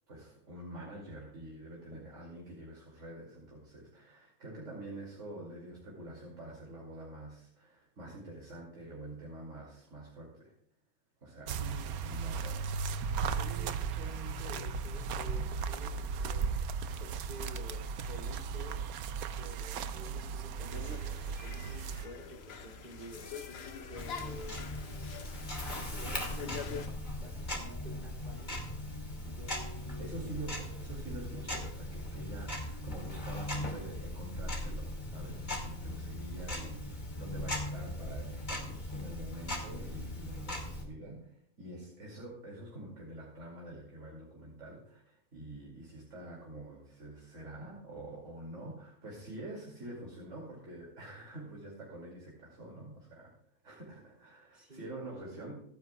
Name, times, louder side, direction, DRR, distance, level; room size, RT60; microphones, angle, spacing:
voice 1, 0.1-10.5 11.2-11.7 12.0-13.0 30.0-41.3 41.6-53.3 53.6-55.5, right 1 dB, 55° right, -3 dB, 3.0 m, -46 dB
voice 2, 11.5-12.0 13.3-16.5 17.0-18.8 19.3-23.3 23.9-24.6 25.9-28.7 29.2-30.3 31.0-31.7 54.5-55.5, right 1 dB, 35° right, -1 dB, 3.2 m, -50 dB
sound 1, 11.5-22.1, right 5 dB, 80° right, 1.2 m, -36 dB
sound 2, 20.7-26.9, left 5 dB, 50° left, 1.0 m, -45 dB
Tick-tock, 23.9-40.8, left 1 dB, 30° left, 2.6 m, -39 dB
26.5 x 9.4 x 2.4 m, 0.70 s
omnidirectional pair, 1.5 m